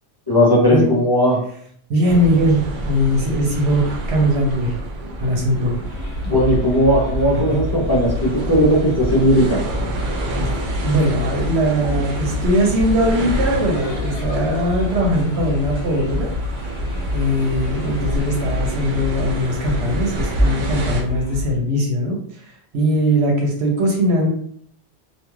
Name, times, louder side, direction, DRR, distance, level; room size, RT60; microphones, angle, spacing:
voice 1, 0.3-1.4 6.2-9.6, equal, 30° left, -6 dB, 0.5 m, -16 dB
voice 2, 1.9-4.8 5.2-5.8 7.3-7.4 10.5-16.3 17.1-24.3, equal, 75° right, 0 dB, 1.0 m, -20 dB
sound 1, 2.1-21.0, right 1 dB, 55° right, 0.6 m, -28 dB
sound 2, 5.8-21.5, left 2 dB, 60° left, 0.9 m, -29 dB
2.5 x 2.3 x 3.0 m, 0.63 s
omnidirectional pair, 1.1 m